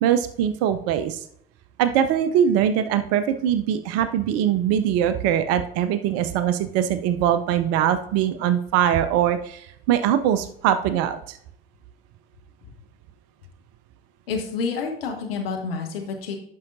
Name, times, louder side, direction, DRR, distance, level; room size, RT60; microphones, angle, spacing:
voice 1, 0.0-1.2 1.8-11.4, right 9 dB, 55° right, 11 dB, 0.6 m, -22 dB
voice 2, 14.3-16.4, left 5 dB, 75° left, 2 dB, 1.3 m, -28 dB
10.5 x 5.5 x 2.6 m, 0.69 s
figure-of-eight pair, 60°, 29 cm